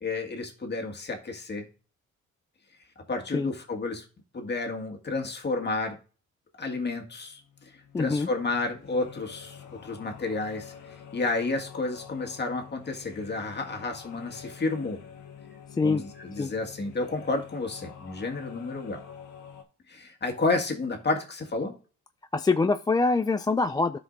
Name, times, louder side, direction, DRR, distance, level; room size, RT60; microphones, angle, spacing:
voice 1, 0.0-1.7 3.1-4.0 4.3-6.0 6.6-7.4 8.0-10.7 11.1-15.0 15.8-19.0 19.9-21.7, left 3 dB, 35° left, 3 dB, 1.9 m, -31 dB
sound 1, 7.1-19.6, left 8 dB, 80° left, 1.4 m, -47 dB
voice 2, 7.9-8.3 15.8-16.1 16.4-16.5 22.3-24.0, left 3 dB, 15° left, 11 dB, 0.3 m, -24 dB
12.0 x 5.0 x 2.6 m, 0.36 s
cardioid pair, 90°, 30 cm